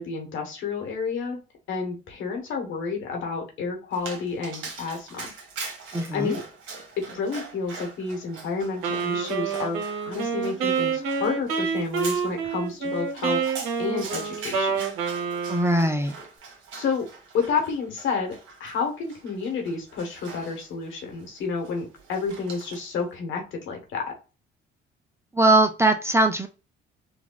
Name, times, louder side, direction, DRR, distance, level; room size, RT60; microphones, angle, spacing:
voice 1, 0.0-1.4 1.7-5.3 6.1-6.4 7.0-13.4 13.8-14.7 16.7-17.0 17.3-24.0, left 5 dB, 70° left, 2 dB, 1.3 m, -30 dB
Dog, 3.9-23.0, right 4 dB, 70° right, 1.3 m, -42 dB
voice 2, 5.9-6.4 15.5-16.1 25.3-26.5, right 2 dB, 10° right, 7 dB, 0.4 m, -21 dB
Wind instrument woodwind instrument, 8.8-16.0, right 6 dB, 85° right, 0.8 m, -28 dB
4.0 x 2.2 x 2.3 m, 0.33 s
cardioid pair, 85°, 21 cm